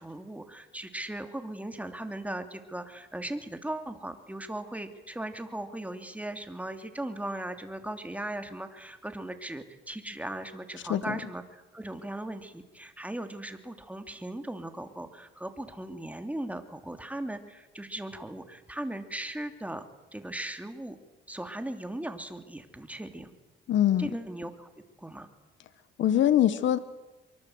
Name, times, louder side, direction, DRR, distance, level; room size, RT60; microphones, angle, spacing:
voice 1, 0.0-19.9 20.1-21.0 21.3-23.3 24.0-24.7 25.0-25.3, right 1 dB, 5° right, 7 dB, 3.0 m, -38 dB
voice 2, 23.7-24.1 26.0-26.8, left 11 dB, 70° left, 13 dB, 1.4 m, -23 dB
24.0 x 23.5 x 8.1 m, 1.2 s
cardioid pair, 90°, 20 cm